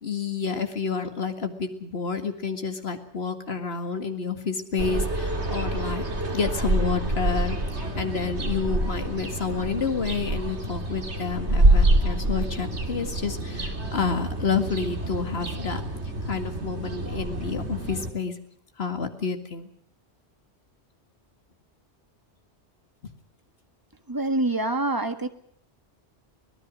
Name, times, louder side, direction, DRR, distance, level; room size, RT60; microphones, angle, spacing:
voice 1, 0.0-6.0 6.3-15.8 16.2-18.3 18.8-19.7, left 5 dB, 65° left, 6 dB, 2.3 m, -29 dB
sound 1, 4.8-18.1, right 1 dB, 80° right, 2.9 m, -26 dB
voice 2, 24.1-25.3, right 2 dB, 20° right, 8 dB, 1.6 m, -25 dB
24.5 x 18.5 x 6.3 m, 0.64 s
omnidirectional pair, 1.1 m